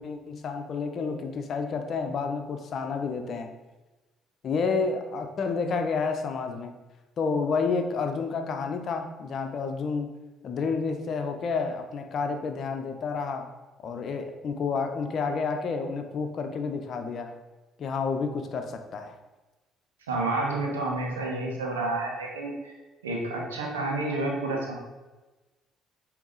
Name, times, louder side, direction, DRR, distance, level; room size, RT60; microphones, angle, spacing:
voice 1, 0.0-3.5 4.4-6.8 7.2-10.1 10.4-13.5 13.8-17.3 17.8-19.2, left 4 dB, 50° left, 6 dB, 0.8 m, -30 dB
voice 2, 20.1-22.7 23.0-24.7, right 2 dB, 85° right, -1 dB, 1.1 m, -29 dB
8.4 x 3.0 x 3.9 m, 1.2 s
hypercardioid pair, 50°, 0 cm